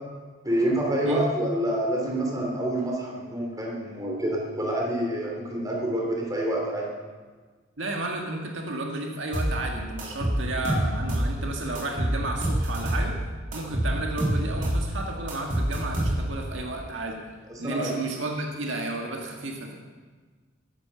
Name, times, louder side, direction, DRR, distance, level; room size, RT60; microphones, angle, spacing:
voice 1, 0.4-6.9 17.5-17.9, right 1 dB, 15° right, -2 dB, 3.0 m, -27 dB
voice 2, 7.8-13.2 13.5-17.2 17.6-19.8, right 2 dB, 65° right, 1 dB, 1.8 m, -32 dB
sound 1, 9.3-9.6 10.0-11.3 11.7-13.1 13.5-14.9 15.3-16.5, right 1 dB, 40° right, 3.6 m, -26 dB
14.5 x 11.0 x 6.9 m, 1.4 s
head